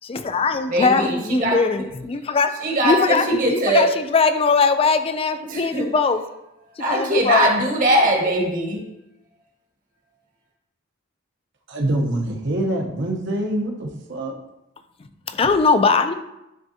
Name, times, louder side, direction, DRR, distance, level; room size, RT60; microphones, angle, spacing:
voice 1, 0.0-6.2 6.8-7.5 15.3-16.1, left 4 dB, 30° left, 9 dB, 0.3 m, -20 dB
voice 2, 0.7-1.6 2.6-3.8 5.5-5.8 6.8-8.8, right 1 dB, 40° right, 0 dB, 1.2 m, -20 dB
voice 3, 11.7-14.4, right 1 dB, 60° right, 1 dB, 0.9 m, -25 dB
10.0 x 3.6 x 2.7 m, 0.90 s
head